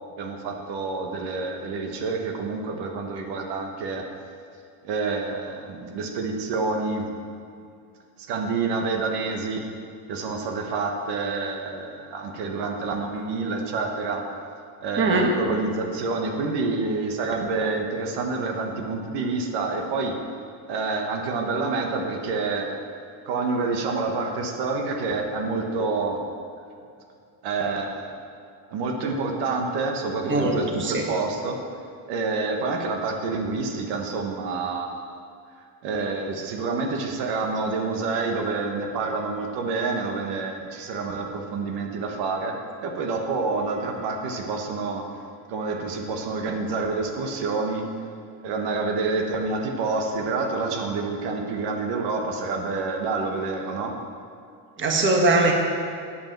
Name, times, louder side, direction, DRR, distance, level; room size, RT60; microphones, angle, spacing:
voice 1, 0.2-4.1 4.8-7.1 8.2-9.7 10.1-14.3 14.8-20.2 20.7-22.7 23.2-26.2 27.4-28.2 28.7-31.6 32.1-35.0 35.8-45.0 45.5-47.9 48.4-54.0, right 3 dB, 70° right, 2 dB, 1.5 m, -28 dB
voice 2, 15.0-15.3 30.3-31.0 54.8-55.5, right 2 dB, 30° right, 1 dB, 1.6 m, -21 dB
8.6 x 8.5 x 7.4 m, 2.3 s
cardioid pair, 140°, 41 cm